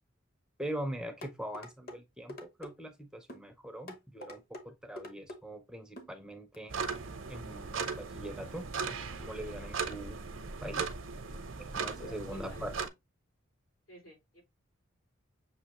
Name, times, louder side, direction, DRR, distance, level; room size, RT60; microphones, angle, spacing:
voice 1, 0.6-6.8 7.3-10.2 10.6-10.9 11.6-12.7, right 1 dB, 5° right, 0.5 m, -42 dB
sound 1, 1.2-2.0 2.3-2.7 3.3-3.5 3.9-4.7 5.0-5.4 6.0-6.1 6.5-6.6, left 1 dB, 45° left, 0.9 m, -45 dB
sound 2, 6.7-12.9, right 5 dB, 65° right, 0.6 m, -38 dB
voice 2, 11.9-12.6 13.9-14.4, equal, 90° left, 3.3 m, -51 dB
6.5 x 2.7 x 2.8 m
head